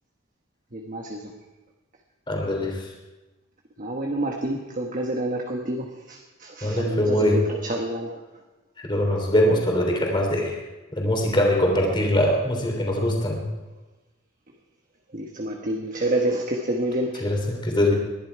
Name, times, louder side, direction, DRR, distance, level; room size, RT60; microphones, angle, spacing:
voice 1, 0.7-1.2 3.8-8.1 15.1-17.2, right 1 dB, 40° right, 1 dB, 1.3 m, -28 dB
voice 2, 2.3-2.9 6.6-7.4 8.8-10.6 11.0-13.5 17.2-17.9, left 1 dB, 25° left, 0 dB, 3.4 m, -22 dB
20.5 x 11.5 x 4.7 m, 1.1 s
head